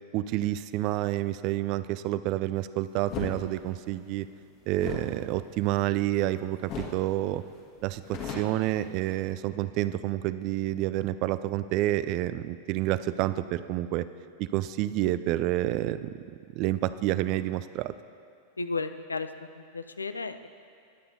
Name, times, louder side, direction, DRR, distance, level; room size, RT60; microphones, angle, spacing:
voice 1, 0.1-4.3 4.7-7.4 7.8-14.0 14.4-16.1 16.5-17.9, right 14 dB, 40° right, 14 dB, 0.3 m, -29 dB
sound 1, 3.1-3.4 4.7-6.3 6.7-7.0 7.3-7.4 7.8-9.3, left 5 dB, 40° left, 1.5 m, -38 dB
voice 2, 18.6-19.3 19.6-20.5, left 3 dB, 80° left, 10 dB, 0.4 m, -33 dB
21.0 x 8.4 x 2.7 m, 2.4 s
figure-of-eight pair, 90°, 0 cm